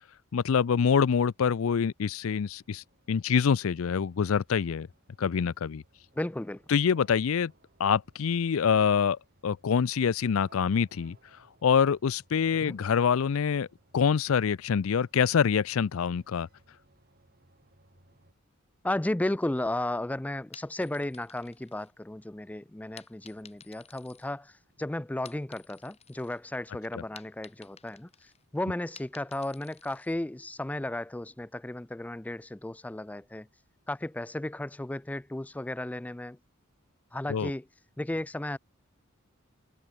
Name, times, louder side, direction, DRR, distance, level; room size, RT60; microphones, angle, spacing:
voice 1, 0.3-4.9 5.2-5.8 6.7-7.5 7.8-11.2 11.6-13.7 13.9-16.5 26.9-27.0 37.3-37.5, left 7 dB, 70° left, 0.4 m, -25 dB
sound 1, 2.0-18.3, right 2 dB, 45° right, 7.8 m, -64 dB
voice 2, 6.2-6.6 12.5-12.8 18.8-28.1 28.5-33.5 33.9-36.4 37.1-37.6 38.0-38.6, left 1 dB, 5° left, 0.4 m, -34 dB
sound 2, 20.5-22.3 23.0-24.7 25.1-26.4 26.7-30.1, left 7 dB, 30° left, 7.4 m, -54 dB
head